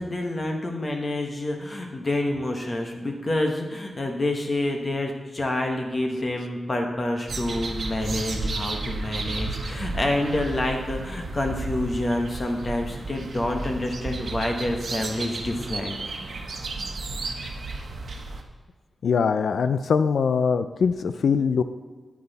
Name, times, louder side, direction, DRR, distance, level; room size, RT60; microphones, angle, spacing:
voice 1, 0.0-16.0, left 1 dB, 30° left, 2 dB, 1.2 m, -28 dB
sound 1, 7.3-18.4, right 3 dB, 60° right, 1.2 m, -33 dB
voice 2, 19.0-21.6, left 6 dB, 85° left, 10 dB, 0.4 m, -22 dB
10.0 x 9.6 x 4.0 m, 1.4 s
wide cardioid pair, 170°, 0 cm